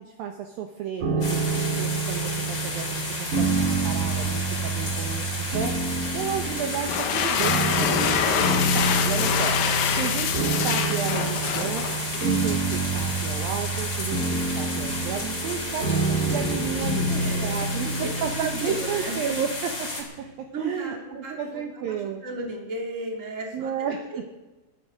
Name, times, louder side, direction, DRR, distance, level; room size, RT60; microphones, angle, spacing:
voice 1, 0.0-11.9 12.2-17.2 17.4-22.2 23.5-24.1, right 7 dB, 80° right, 3 dB, 2.1 m, -33 dB
sound 1, 1.0-20.0, right 3 dB, 50° right, 3.3 m, -28 dB
sound 2, 1.2-20.0, left 2 dB, 30° left, 2.9 m, -33 dB
sound 3, 6.7-12.3, left 8 dB, 85° left, 3.5 m, -26 dB
voice 2, 17.0-17.5 17.7-19.2 20.2-24.3, right 2 dB, 25° right, 0 dB, 1.8 m, -35 dB
21.0 x 9.8 x 5.1 m, 1.1 s
omnidirectional pair, 5.5 m